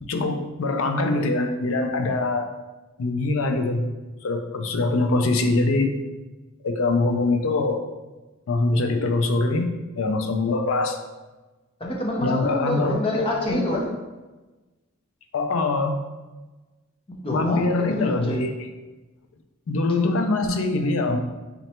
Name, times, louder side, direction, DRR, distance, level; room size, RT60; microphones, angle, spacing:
voice 1, 0.0-2.5 3.0-3.9 4.2-5.9 6.6-7.8 8.5-9.7 10.0-11.0 12.2-13.0 13.5-13.6 15.3-16.0 17.3-18.5 19.7-21.2, left 2 dB, 70° left, 6 dB, 0.4 m, -23 dB
voice 2, 11.8-13.9 17.1-18.4, left 1 dB, 25° left, -1 dB, 0.6 m, -27 dB
3.9 x 2.2 x 4.2 m, 1.2 s
head